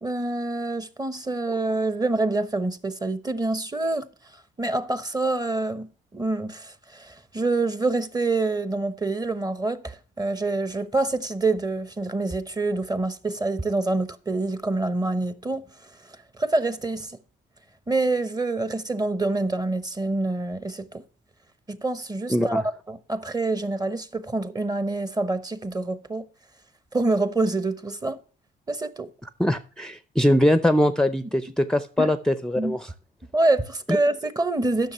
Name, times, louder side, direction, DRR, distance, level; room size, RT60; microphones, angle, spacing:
voice 1, 0.0-4.1 4.6-15.6 16.4-17.2 17.9-21.0 21.7-26.3 26.9-28.2 28.7-29.1 32.0-32.1 32.6-32.8 33.3-34.9, right 2 dB, 20° right, 0.9 m, -26 dB
voice 2, 22.3-22.6 29.4-32.9, left 1 dB, 5° left, 0.6 m, -22 dB
10.5 x 6.4 x 5.6 m
cardioid pair, 90°, 20 cm